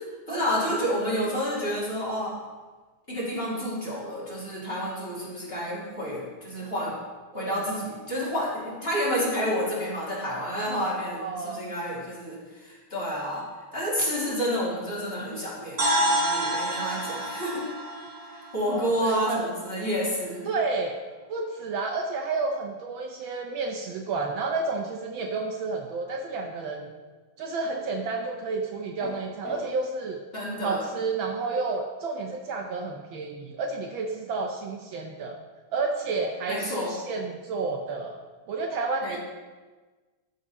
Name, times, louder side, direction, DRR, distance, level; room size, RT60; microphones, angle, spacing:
voice 1, 0.3-2.4 3.1-7.0 7.3-13.4 13.7-17.6 18.3-20.5 30.3-30.9 36.5-36.9 39.0-39.2, equal, 25° left, -7 dB, 2.7 m, -29 dB
voice 2, 7.3-7.8 11.2-11.6 18.7-19.5 20.5-21.0 21.3-26.9 27.4-30.2 30.6-35.4 35.7-38.2 38.5-39.2, right 3 dB, 70° right, 2 dB, 1.4 m, -31 dB
sound 1, 15.8-19.7, right 1 dB, 30° right, 1.4 m, -29 dB
sound 2, 29.0-29.7, left 1 dB, 50° left, 2.4 m, -37 dB
13.0 x 4.9 x 4.0 m, 1.3 s
omnidirectional pair, 2.4 m